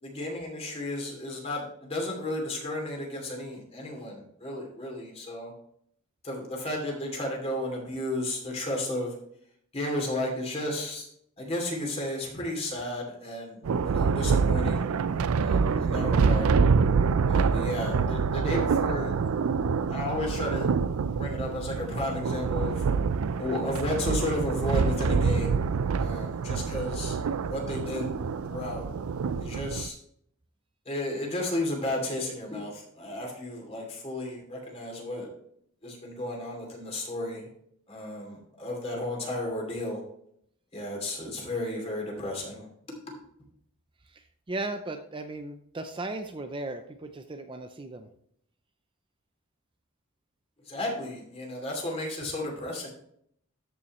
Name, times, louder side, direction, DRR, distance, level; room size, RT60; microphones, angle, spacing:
voice 1, 0.0-5.5 6.2-9.1 9.7-11.1 11.4-14.9 15.4-16.5 17.3-19.1 19.9-20.7 21.1-22.8 23.4-25.5 26.0-27.2 27.5-28.1 28.5-28.8 29.4-29.9 30.9-35.3 35.8-37.5 37.9-40.0 40.7-42.7 50.7-52.9, left 1 dB, 30° left, 0 dB, 2.8 m, -33 dB
Thunder, 13.6-29.9, right 5 dB, 80° right, 0.4 m, -26 dB
voice 2, 44.1-48.1, right 2 dB, 25° right, 7 dB, 0.5 m, -37 dB
13.5 x 5.7 x 3.1 m, 0.69 s
head